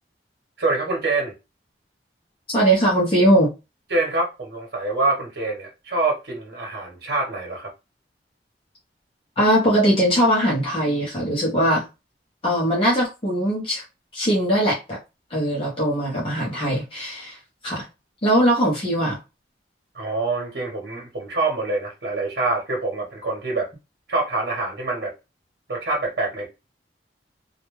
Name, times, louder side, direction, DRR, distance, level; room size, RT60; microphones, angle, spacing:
voice 1, 0.6-1.3 3.9-7.7 19.9-23.7 24.1-25.1 25.7-26.5, right 3 dB, 70° right, 0.9 m, -25 dB
voice 2, 2.5-3.5 9.4-11.8 12.4-13.8 14.1-15.0 15.3-17.4 17.6-17.9 18.2-19.2, right 1 dB, 30° left, 0.7 m, -20 dB
2.3 x 2.2 x 3.0 m
head